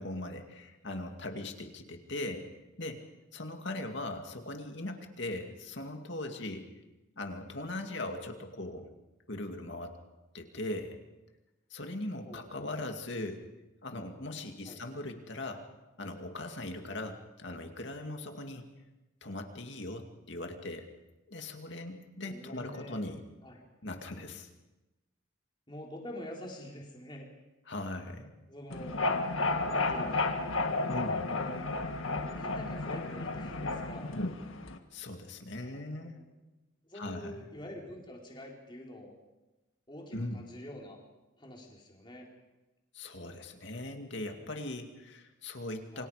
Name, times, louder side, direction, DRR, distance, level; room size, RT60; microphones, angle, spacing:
voice 1, 0.0-2.5 2.8-3.0 3.3-6.7 7.2-8.9 9.3-10.0 10.3-11.0 11.7-13.5 13.8-15.6 16.0-18.6 19.2-20.9 21.3-23.2 23.8-24.5 27.7-28.4 30.9-31.3 34.9-36.2 36.9-37.4 40.1-40.4 42.9-46.1, left 2 dB, 60° left, 4 dB, 2.4 m, -39 dB
voice 2, 22.2-23.0 23.4-23.6 25.7-27.3 28.5-29.0 29.7-30.3 31.3-31.6 32.2-34.1 35.6-36.2 36.8-39.1 39.9-41.0 41.4-42.3 45.9-46.1, left 1 dB, 25° left, -1 dB, 4.3 m, -46 dB
sound 1, 28.7-34.8, left 3 dB, 80° left, 1.8 m, -32 dB
28.0 x 25.0 x 5.1 m, 1.1 s
head